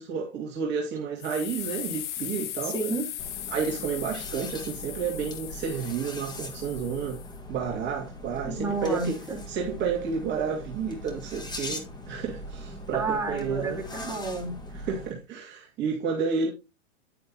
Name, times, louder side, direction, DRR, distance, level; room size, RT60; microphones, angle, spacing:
voice 1, 0.0-2.7 3.5-7.2 7.5-9.2 9.5-13.8 14.7-16.5, right 6 dB, 30° right, 2.4 m, -31 dB
sound 1, 1.2-7.4, left 12 dB, 70° left, 1.2 m, -38 dB
voice 2, 2.6-3.1 8.4-9.4 12.9-14.6, right 3 dB, 5° right, 3.9 m, -31 dB
sound 2, 3.2-15.1, left 1 dB, 10° left, 1.7 m, -41 dB
10.0 x 9.2 x 2.9 m
hypercardioid pair, 130°, 37 cm